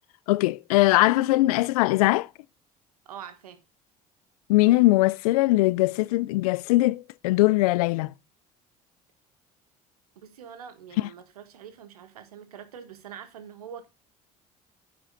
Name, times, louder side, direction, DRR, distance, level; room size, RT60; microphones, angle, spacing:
voice 1, 0.3-2.3 4.5-8.1, left 19 dB, 80° left, 0.4 m, -21 dB
voice 2, 3.0-3.6 10.1-13.9, right 8 dB, 85° right, 1.4 m, -44 dB
9.8 x 7.4 x 3.8 m
hypercardioid pair, 60°, 19 cm